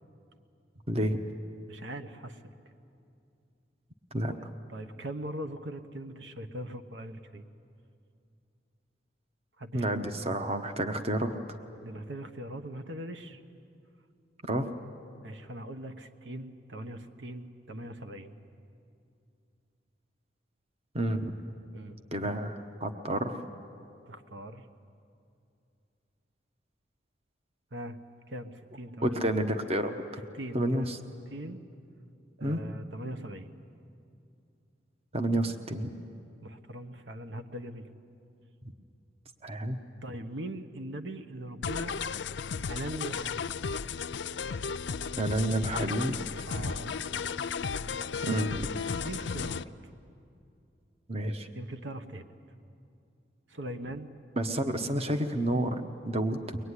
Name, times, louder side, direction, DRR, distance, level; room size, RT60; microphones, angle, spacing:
voice 1, 0.9-1.2 4.1-4.3 9.7-11.6 14.4-14.7 20.9-21.4 22.1-23.5 29.0-30.2 30.5-31.0 32.4-32.6 35.1-35.9 39.4-39.8 45.2-46.2 46.6-46.7 48.2-48.7 51.1-51.5 54.4-56.6, right 1 dB, 30° right, 7 dB, 1.1 m, -30 dB
voice 2, 1.7-2.4 4.7-7.5 9.6-10.3 11.8-13.4 15.2-18.4 21.7-22.0 24.1-24.7 27.7-28.0 28.3-29.2 30.3-30.9 31.3-31.6 32.4-33.5 36.4-37.9 40.0-42.0 42.7-43.5 46.5-46.9 49.0-49.6 51.5-52.3 53.5-54.1, right 1 dB, 70° right, 8 dB, 1.1 m, -40 dB
sound 1, 41.6-49.6, left 6 dB, 65° left, 0.5 m, -34 dB
23.0 x 21.0 x 9.8 m, 2.6 s
head